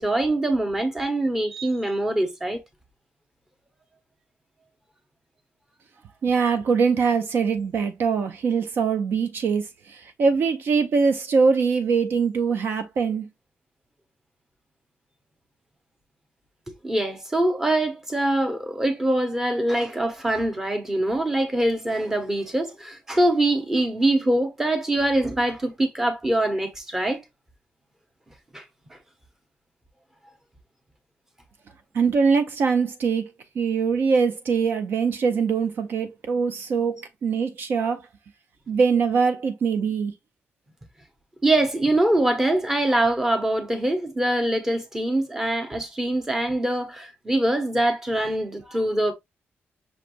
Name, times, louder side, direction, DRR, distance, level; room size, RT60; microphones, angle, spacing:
voice 1, 0.0-2.6 16.8-27.2 28.5-28.6 41.4-49.1, right 1 dB, 10° right, 0.9 m, -23 dB
voice 2, 6.2-13.3 31.9-38.0 38.7-40.1, right 5 dB, 55° right, 0.6 m, -23 dB
6.0 x 3.2 x 2.5 m
wide cardioid pair, 175°, 4 cm